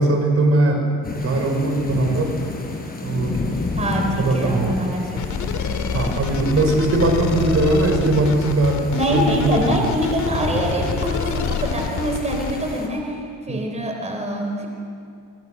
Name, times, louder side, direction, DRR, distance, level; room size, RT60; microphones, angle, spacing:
voice 1, 0.0-2.4 3.0-3.4 3.7-3.8 4.1-4.8 5.9-8.8 9.1-9.9 13.5-13.6, right 2 dB, 50° right, 3 dB, 5.5 m, -20 dB
sound 1, 1.0-12.9, left 3 dB, 30° left, 5.5 m, -31 dB
voice 2, 3.6-6.0 8.9-13.2 13.5-14.7, equal, 20° right, 2 dB, 3.9 m, -25 dB
sound 2, 5.2-12.5, left 7 dB, 75° left, 2.3 m, -27 dB
25.0 x 24.0 x 6.7 m, 2.5 s
cardioid pair, 90°, 30 cm